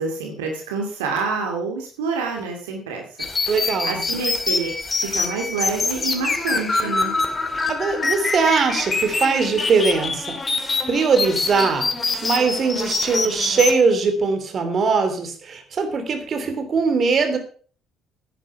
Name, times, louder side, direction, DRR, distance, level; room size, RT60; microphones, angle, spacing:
voice 1, 0.0-3.0 3.3-7.1, right 4 dB, 80° right, 2 dB, 2.3 m, -27 dB
sound 1, 3.2-13.7, left 3 dB, 30° left, 2.2 m, -25 dB
voice 2, 3.5-4.0 6.8-6.9 7.5-10.4 10.9-11.9 12.2-17.4, right 4 dB, 45° right, 7 dB, 3.1 m, -21 dB
10.5 x 10.0 x 5.8 m, 0.40 s
hypercardioid pair, 50°, 0 cm